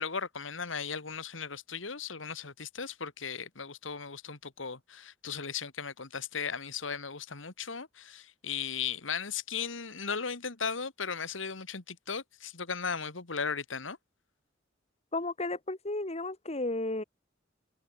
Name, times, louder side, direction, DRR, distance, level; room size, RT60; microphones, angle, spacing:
voice 1, 0.0-14.0, left 6 dB, 90° left, 1.9 m, -37 dB
voice 2, 15.1-17.0, left 2 dB, 35° left, 2.4 m, -33 dB
head